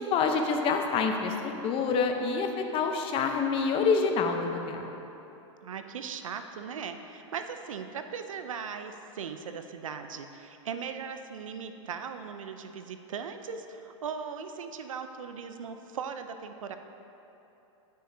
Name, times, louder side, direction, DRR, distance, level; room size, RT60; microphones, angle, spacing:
voice 1, 0.1-4.8, left 5 dB, 35° left, 4 dB, 0.7 m, -27 dB
voice 2, 5.6-16.8, right 6 dB, 85° right, 8 dB, 0.5 m, -38 dB
10.5 x 6.4 x 2.7 m, 3.0 s
hypercardioid pair, 110°, 17 cm